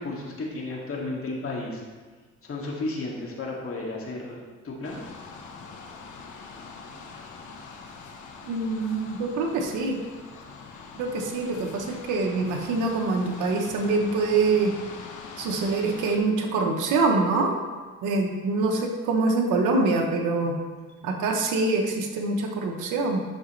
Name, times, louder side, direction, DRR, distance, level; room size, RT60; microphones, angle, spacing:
voice 1, 0.0-1.8 2.4-5.0, left 2 dB, 45° left, -2 dB, 2.3 m, -33 dB
sound 1, 4.8-16.2, left 4 dB, 75° left, 1.2 m, -43 dB
voice 2, 8.4-10.0 11.0-14.7 15.4-17.6 18.0-20.6 21.0-23.2, right 3 dB, 90° right, 2 dB, 1.2 m, -25 dB
11.0 x 6.1 x 3.3 m, 1.4 s
cardioid pair, 90°, 30 cm